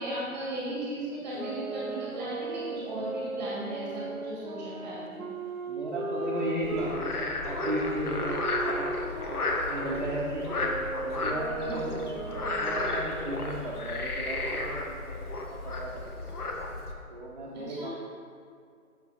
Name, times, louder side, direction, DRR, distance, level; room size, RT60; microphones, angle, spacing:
voice 1, 0.0-5.2 11.6-11.8 17.5-17.9, right 1 dB, 10° right, -7 dB, 1.6 m, -36 dB
sound 1, 1.3-6.9 7.6-13.0, right 3 dB, 70° right, 1.0 m, -37 dB
voice 2, 5.7-8.9 9.3-10.6 11.0-16.3 17.1-17.9, right 1 dB, 35° right, -8 dB, 0.9 m, -36 dB
Frog, 6.6-16.9, left 2 dB, 85° left, 1.4 m, -33 dB
7.7 x 6.8 x 4.1 m, 2.2 s
hypercardioid pair, 175°, 44 cm